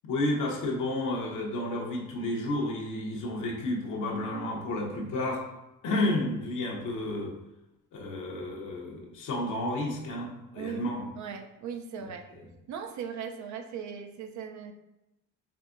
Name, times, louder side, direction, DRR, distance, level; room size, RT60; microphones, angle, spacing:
voice 1, 0.0-5.4 5.8-7.3 7.9-11.1 12.0-12.1 12.3-12.4, left 1 dB, 85° left, -1 dB, 0.9 m, -31 dB
voice 2, 10.5-12.2 12.7-14.7, right 7 dB, 70° right, 6 dB, 0.5 m, -38 dB
4.7 x 2.6 x 2.5 m, 0.94 s
cardioid pair, 90°, 30 cm